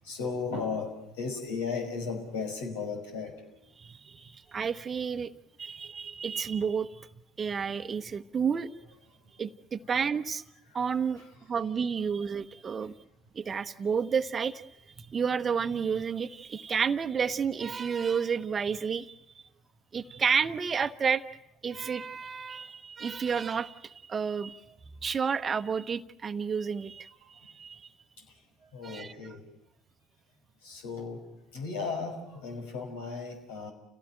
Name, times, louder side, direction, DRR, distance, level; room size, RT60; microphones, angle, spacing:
voice 1, 0.0-3.4 4.2-4.7 5.6-5.7 8.8-8.9 9.3-9.4 10.7-11.3 12.8-12.9 27.2-27.3 28.2-28.4 28.7-29.4 30.6-31.3 31.5-33.7, left 4 dB, 75° left, 3 dB, 5.5 m, -36 dB
voice 2, 3.8-5.3 5.6-7.1 7.4-8.7 9.4-10.4 10.7-11.2 11.5-12.9 13.3-14.7 15.0-19.2 19.9-21.2 21.6-24.8 25.0-27.9 28.8-29.1, right 6 dB, 35° right, 12 dB, 1.0 m, -31 dB
29.5 x 17.0 x 9.0 m, 0.82 s
hypercardioid pair, 65°, 0 cm